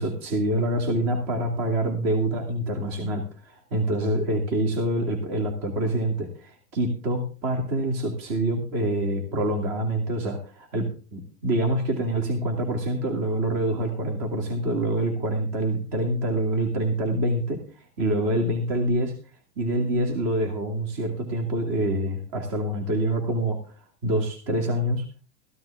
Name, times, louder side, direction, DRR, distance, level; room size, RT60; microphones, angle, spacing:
voice 1, 0.0-19.1 19.6-23.6 24.0-25.0, right 1 dB, 35° right, 5 dB, 2.7 m, -26 dB
14.5 x 13.5 x 3.5 m, 0.36 s
supercardioid pair, 170°, 45 cm